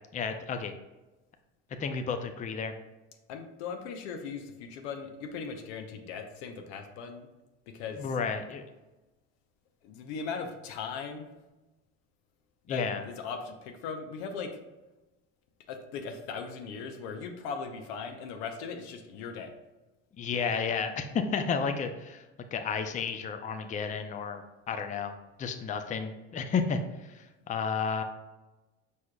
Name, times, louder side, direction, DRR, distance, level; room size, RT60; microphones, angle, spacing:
voice 1, 0.1-0.7 1.8-2.8 8.0-8.6 12.7-13.0 20.2-21.1 21.3-22.2 22.5-24.4 24.7-28.0, left 5 dB, 25° left, 7 dB, 0.4 m, -32 dB
voice 2, 3.3-7.3 7.7-8.1 9.8-11.3 12.7-14.6 15.7-19.5, left 5 dB, 85° left, 5 dB, 0.7 m, -38 dB
4.9 x 4.2 x 2.3 m, 1.1 s
supercardioid pair, 85°, 32 cm